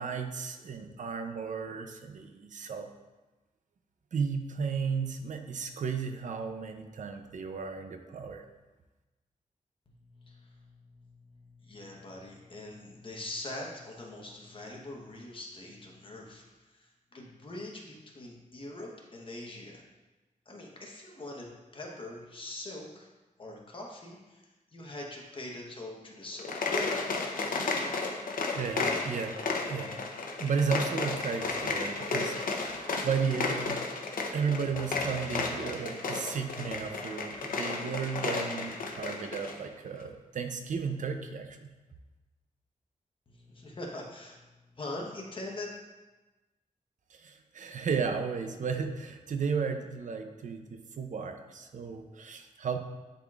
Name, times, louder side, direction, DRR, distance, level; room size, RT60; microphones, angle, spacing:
voice 1, 0.0-2.9 4.1-8.4 28.5-29.4 29.7-29.9 30.4-33.8 34.3-41.7 47.1-52.8, right 5 dB, 65° right, 6 dB, 0.5 m, -34 dB
voice 2, 9.9-19.8 20.5-23.1 23.4-24.4 24.7-26.7 43.3-45.7, left 2 dB, 40° left, -1 dB, 1.0 m, -43 dB
sound 1, 26.3-39.6, left 3 dB, 85° left, 0.7 m, -33 dB
10.0 x 4.0 x 2.4 m, 1.1 s
wide cardioid pair, 155°, 14 cm